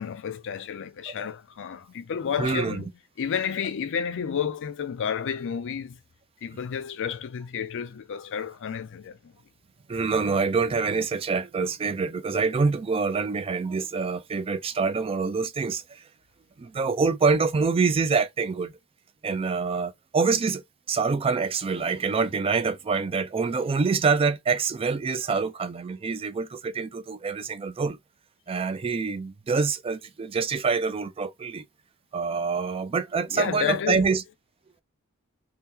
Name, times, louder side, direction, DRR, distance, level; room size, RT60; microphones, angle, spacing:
voice 1, 0.0-2.9 3.2-6.0 6.4-9.3 33.3-34.2, left 7 dB, 55° left, 0.4 m, -31 dB
voice 2, 2.4-2.8 9.9-16.0 16.6-18.7 19.2-28.0 28.5-31.6 32.1-34.2, right 4 dB, 25° right, 0.3 m, -26 dB
2.8 x 2.1 x 3.5 m
head